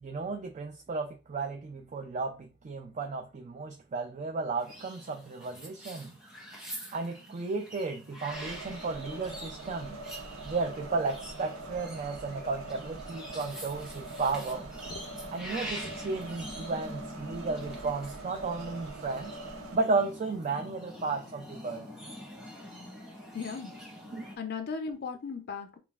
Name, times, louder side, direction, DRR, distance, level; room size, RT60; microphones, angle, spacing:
voice 1, 0.0-6.1 6.9-10.0 10.5-14.7 15.3-19.3 19.7-21.9 24.1-24.2, right 3 dB, 35° right, 0.3 m, -34 dB
sound 1, 4.6-24.4, equal, 5° right, 1.0 m, -45 dB
sound 2, 8.3-19.8, right 2 dB, 70° right, 0.6 m, -43 dB
voice 2, 23.3-23.7 24.4-25.8, left 5 dB, 45° left, 0.4 m, -36 dB
5.3 x 2.3 x 2.3 m
head